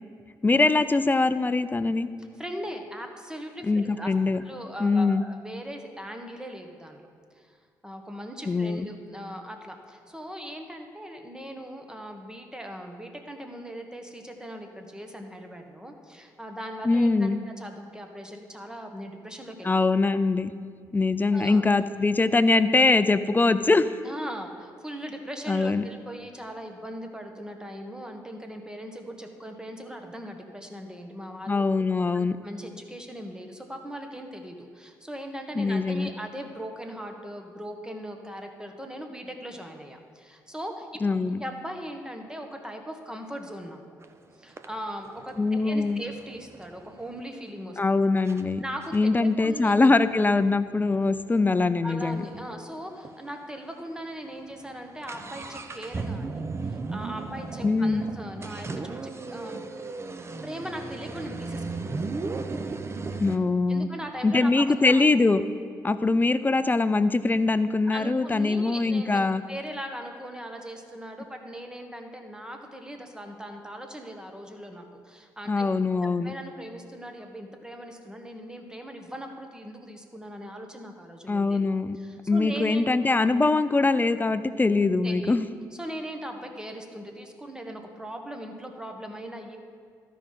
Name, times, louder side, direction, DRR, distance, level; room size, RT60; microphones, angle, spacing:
voice 1, 0.4-2.1 3.6-4.4 4.8-5.2 8.5-8.9 16.8-17.4 19.6-20.5 20.9-23.9 25.5-25.8 31.5-32.4 35.6-36.1 41.0-41.4 45.4-46.0 47.8-48.6 48.9-52.2 57.6-58.0 63.2-63.9 64.2-65.4 65.8-69.4 75.5-76.3 81.3-82.0 82.3-85.5, left 3 dB, 20° left, 13 dB, 0.4 m, -22 dB
voice 2, 2.4-4.1 4.4-7.1 7.3-7.6 7.8-19.7 21.3-21.6 24.0-31.6 32.1-41.0 41.3-43.8 44.4-47.8 48.6-49.8 51.8-59.6 60.4-61.9 63.7-65.1 67.9-75.7 76.0-81.6 81.9-83.1 85.0-85.4 85.7-89.6, equal, 10° right, 4 dB, 1.3 m, -39 dB
sound 1, 44.0-44.1 44.6-47.2 47.8-47.9 48.3-48.4 48.8-52.5 52.8-52.9 53.0-53.2 53.8-53.9 54.2-63.4, right 3 dB, 30° right, 0.7 m, -36 dB
12.5 x 5.1 x 5.6 m, 2.2 s
supercardioid pair, 55°, 8 cm